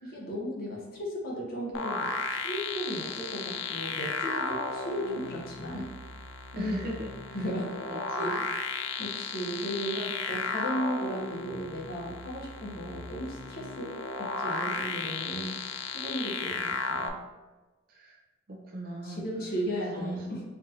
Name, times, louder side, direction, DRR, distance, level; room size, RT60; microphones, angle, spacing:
voice 1, 0.0-5.8 6.5-6.9 7.3-7.8 8.1-8.4 9.0-10.0 10.3-15.6 15.9-17.2 19.0-20.4, equal, 50° left, -3 dB, 0.9 m, -35 dB
sound 1, 1.7-17.1, left 4 dB, 75° left, 0.4 m, -34 dB
voice 2, 6.6-7.5 7.9-8.4 9.9-10.1 12.6-12.8 17.9-18.2 18.5-19.2 19.9-20.3, right 1 dB, 50° right, -1 dB, 0.5 m, -38 dB
4.5 x 2.5 x 2.7 m, 1.2 s
head